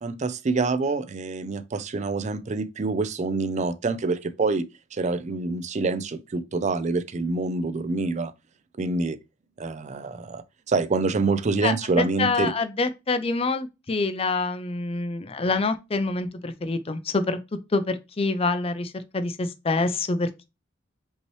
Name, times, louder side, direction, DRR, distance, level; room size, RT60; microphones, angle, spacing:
voice 1, 0.0-8.3 8.8-9.2 9.6-12.5, right 3 dB, 35° right, 0.4 m, -26 dB
voice 2, 11.6-17.4 17.7-20.5, left 3 dB, 30° left, 0.5 m, -26 dB
5.4 x 3.0 x 3.1 m
head